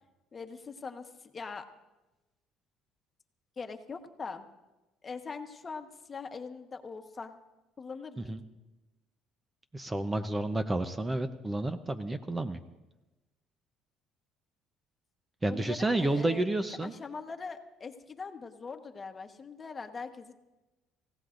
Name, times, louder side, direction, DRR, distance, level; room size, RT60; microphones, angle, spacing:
voice 1, 0.3-1.7 3.6-4.5 5.0-7.4 7.8-8.3 15.5-16.4 16.8-20.3, left 4 dB, 30° left, 6 dB, 1.3 m, -42 dB
voice 2, 9.7-12.6 15.4-16.9, right 2 dB, 15° right, 9 dB, 0.7 m, -30 dB
27.0 x 16.0 x 2.6 m, 1.1 s
cardioid pair, 100°, 0 cm